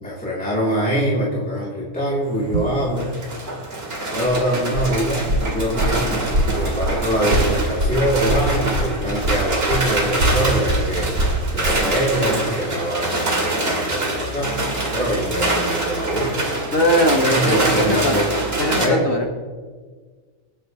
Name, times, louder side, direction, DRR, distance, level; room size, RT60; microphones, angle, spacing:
voice 1, 0.0-3.1 4.1-14.6 14.9-16.4 17.3-18.3 18.8-19.0, equal, 5° left, -7 dB, 3.1 m, -24 dB
sound 1, 2.3-18.9, right 2 dB, 35° right, 2.4 m, -25 dB
Walk footsteps, 4.1-8.9 9.2-11.8, right 1 dB, 90° right, 3.9 m, -23 dB
voice 2, 16.7-18.2 18.6-19.4, equal, 50° left, 2 dB, 1.8 m, -20 dB
28.0 x 9.8 x 3.1 m, 1.5 s
omnidirectional pair, 1.9 m